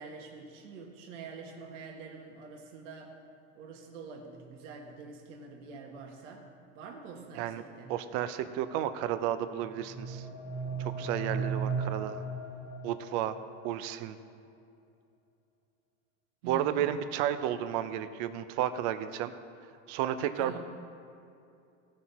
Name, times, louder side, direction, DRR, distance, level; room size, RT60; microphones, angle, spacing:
voice 1, 0.0-3.1 3.5-6.4 6.7-7.9 16.4-16.8 20.4-20.6, right 4 dB, 80° right, 1 dB, 1.6 m, -46 dB
voice 2, 7.9-10.3 10.8-12.2 12.8-13.4 13.6-14.2 16.4-19.3 19.9-20.6, right 11 dB, 55° right, 11 dB, 0.7 m, -32 dB
sound 1, 9.5-13.5, right 4 dB, 80° left, 1.4 m, -36 dB
17.0 x 5.9 x 4.2 m, 2.5 s
supercardioid pair, 125°, 37 cm